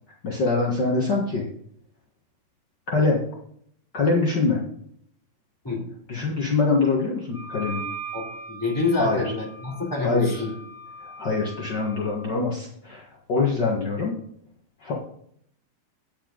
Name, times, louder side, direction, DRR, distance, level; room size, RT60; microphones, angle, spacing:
voice 1, 0.2-1.4 2.9-3.2 3.9-4.6 6.1-7.8 9.0-9.3 10.0-10.5 11.0-14.2 14.8-14.9, left 3 dB, 55° left, -2 dB, 1.2 m, -24 dB
Wind instrument woodwind instrument, 7.3-12.3, right 3 dB, 65° right, 0.7 m, -39 dB
voice 2, 8.1-10.5, left 3 dB, 5° left, -2 dB, 2.5 m, -27 dB
10.0 x 9.3 x 3.9 m, 0.66 s
omnidirectional pair, 4.3 m